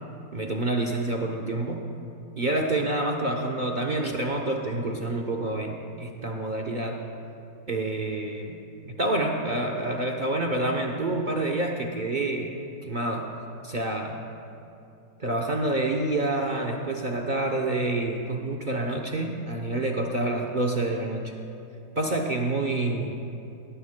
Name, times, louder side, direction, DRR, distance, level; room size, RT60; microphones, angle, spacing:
voice 1, 0.3-1.9 2.4-7.1 7.7-8.6 8.8-12.5 12.8-13.3 13.6-14.2 15.2-21.3 22.0-23.1, right 2 dB, 75° right, 1 dB, 0.4 m, -28 dB
21.0 x 18.0 x 2.2 m, 2.8 s
omnidirectional pair, 2.1 m